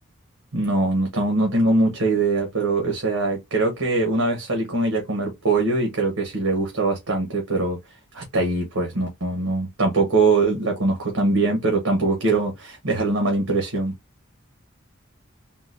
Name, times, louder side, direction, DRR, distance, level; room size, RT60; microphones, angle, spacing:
voice 1, 0.5-7.8 8.1-13.9, right 3 dB, 80° right, 1.1 m, -22 dB
3.7 x 2.3 x 2.5 m
head